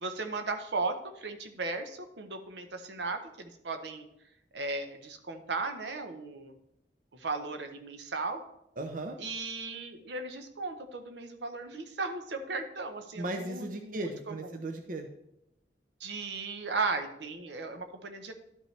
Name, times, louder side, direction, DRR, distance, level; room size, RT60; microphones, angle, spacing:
voice 1, 0.0-4.0 4.5-6.5 7.1-8.4 9.2-14.1 14.4-14.5 16.0-18.3, right 3 dB, 75° right, 6 dB, 0.8 m, -36 dB
voice 2, 8.8-9.2 13.2-15.1, right 2 dB, 50° right, 5 dB, 0.6 m, -36 dB
11.5 x 5.3 x 3.2 m, 0.80 s
head